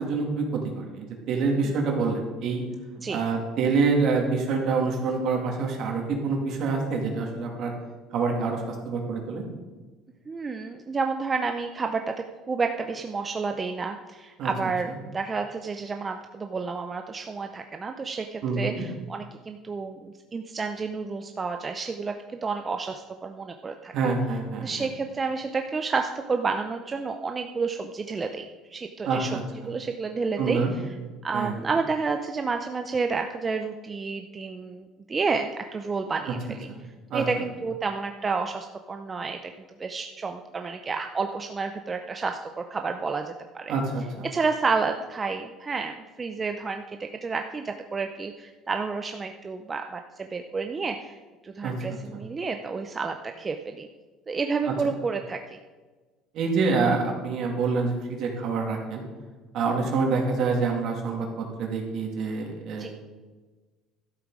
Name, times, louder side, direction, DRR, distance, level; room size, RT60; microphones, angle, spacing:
voice 1, 0.0-2.6 3.1-7.7 8.1-9.4 14.4-14.5 14.9-15.0 18.4-18.8 23.9-24.9 29.0-29.4 30.4-30.7 31.3-31.5 37.1-37.2 43.7-44.3 51.6-51.7 54.6-54.7 56.3-59.0 59.5-62.9, right 4 dB, 55° right, 1 dB, 2.4 m, -26 dB
voice 2, 10.3-12.1 12.5-23.9 24.6-29.3 29.7-30.6 31.2-36.7 37.1-39.5 39.8-43.7 44.2-51.1 51.4-53.9 54.3-55.4 59.7-59.9 62.8-62.9, right 4 dB, 25° right, 5 dB, 0.5 m, -30 dB
12.5 x 7.2 x 4.9 m, 1.3 s
cardioid pair, 135°, 0 cm